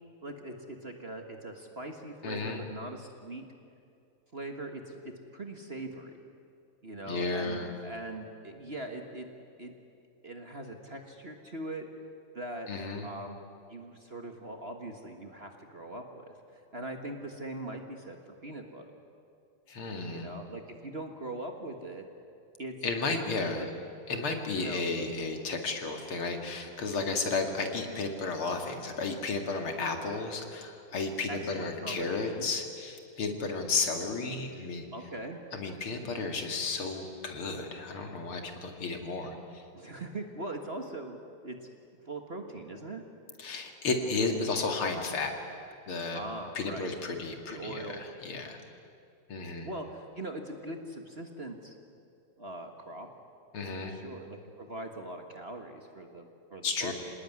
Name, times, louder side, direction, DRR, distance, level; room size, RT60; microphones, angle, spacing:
voice 1, 0.2-3.4 4.3-6.1 6.8-9.3 9.6-9.7 10.2-11.9 12.3-12.7 13.0-18.8 20.1-22.1 22.6-22.7 23.6-23.7 24.6-24.8 31.3-32.5 34.9-35.4 39.7-41.2 41.4-41.6 42.0-43.0 46.1-46.9 47.5-48.1 49.6-51.7 52.4-53.1 53.8-56.9, right 2 dB, 30° right, 4 dB, 1.6 m, -41 dB
voice 2, 2.2-2.6 7.1-7.7 12.7-13.1 19.7-20.3 22.8-23.6 24.1-34.8 35.5-39.6 43.4-45.3 45.9-46.2 46.5-48.6 49.3-49.7 53.5-53.9 56.6-56.9, left 3 dB, 70° left, 4 dB, 3.1 m, -33 dB
26.5 x 18.5 x 9.6 m, 2.5 s
omnidirectional pair, 2.4 m